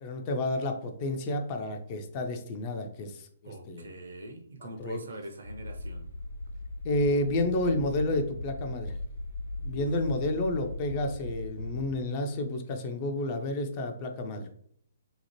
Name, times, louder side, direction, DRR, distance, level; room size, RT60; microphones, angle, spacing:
voice 1, 0.0-3.9 4.8-5.0 6.8-9.0 9.6-14.6, left 2 dB, 30° left, 4 dB, 0.3 m, -30 dB
voice 2, 3.4-6.1 9.7-9.9, right 1 dB, 60° right, 5 dB, 0.5 m, -43 dB
sound 1, 5.4-11.9, left 2 dB, 75° left, 0.9 m, -38 dB
2.8 x 2.0 x 2.9 m, 0.64 s
figure-of-eight pair, 125°, 0 cm